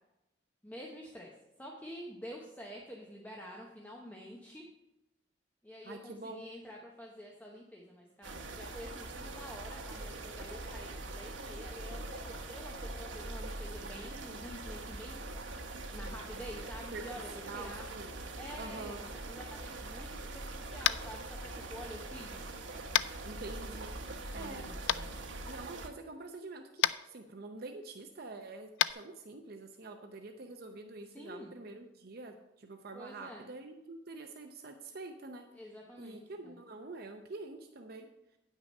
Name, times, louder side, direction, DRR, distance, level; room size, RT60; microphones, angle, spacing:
voice 1, 0.6-1.3 1.6-4.7 5.6-15.2 15.9-17.9 18.4-22.4 24.3-25.1 31.1-31.6 32.9-33.4 35.5-36.5, equal, 10° left, -1 dB, 0.9 m, -48 dB
voice 2, 5.8-6.4 16.9-17.0 17.5-18.1 18.6-19.0 23.2-24.7 25.4-35.4 36.0-38.1, right 3 dB, 55° right, 5 dB, 0.7 m, -46 dB
sound 1, 8.2-25.9, right 2 dB, 90° right, 1.1 m, -43 dB
Tap, 20.8-21.1 22.9-23.1 24.9-25.0 26.8-27.0 28.8-28.9, left 12 dB, 85° left, 0.3 m, -28 dB
9.3 x 6.2 x 5.3 m, 0.92 s
head